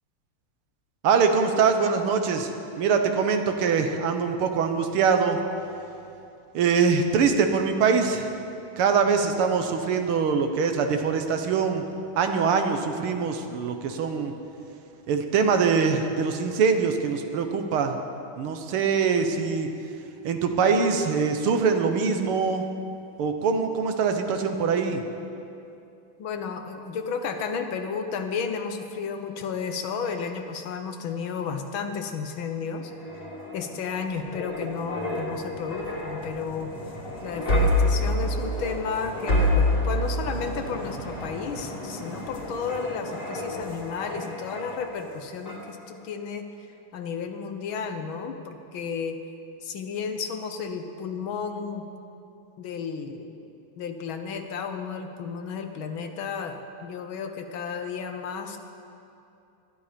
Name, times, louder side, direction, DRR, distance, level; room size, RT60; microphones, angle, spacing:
voice 1, 1.0-5.4 6.5-8.3 8.8-11.9 12.2-14.3 15.1-18.0 18.4-19.7 20.2-22.7 23.2-25.0, right 5 dB, 90° right, 6 dB, 2.0 m, -23 dB
voice 2, 26.2-33.3 33.5-36.7 37.2-46.5 46.9-49.2 49.6-51.9 52.6-53.5 53.8-58.6, left 5 dB, 70° left, 7 dB, 1.8 m, -33 dB
sound 1, 32.8-45.1 45.5-45.7, left 1 dB, 45° left, 3.0 m, -28 dB
20.5 x 12.5 x 5.1 m, 2.7 s
omnidirectional pair, 2.3 m